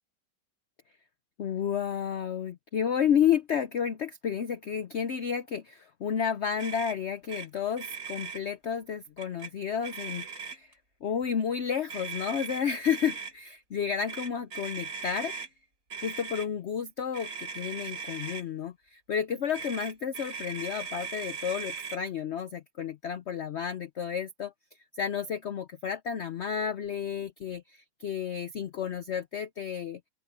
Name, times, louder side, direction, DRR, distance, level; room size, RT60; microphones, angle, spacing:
voice 1, 1.4-10.7 11.0-15.3 16.0-24.5 24.9-30.0, left 8 dB, 60° left, 0.7 m, -31 dB
Motor vehicle (road), 6.6-7.0 7.3-7.5 7.7-8.4 9.2-9.5 9.8-10.7 11.9-13.3 14.1-15.5 15.9-16.5 17.1-18.4 19.5-22.0, right 6 dB, 50° right, 6.8 m, -39 dB
open air
omnidirectional pair, 1.8 m